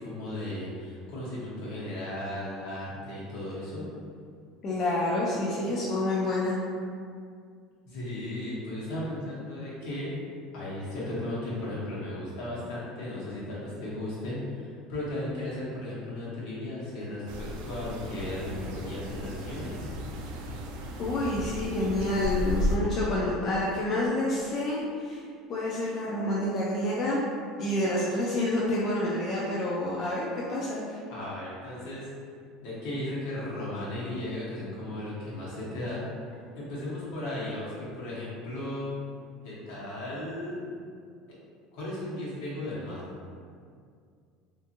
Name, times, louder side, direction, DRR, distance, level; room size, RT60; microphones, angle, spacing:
voice 1, 0.0-3.9 7.8-10.1 10.5-19.9 31.1-32.1 32.6-36.1 36.5-38.9 39.4-40.6 41.7-43.0, left 1 dB, 70° left, -7 dB, 1.0 m, -35 dB
voice 2, 4.6-6.6 21.0-25.2 25.5-27.2 27.6-31.0, left 1 dB, 30° left, -6 dB, 0.3 m, -28 dB
sound 1, 17.3-22.8, left 1 dB, 75° right, 0.3 m, -34 dB
2.5 x 2.4 x 2.6 m, 2.2 s
cardioid pair, 165°, 0 cm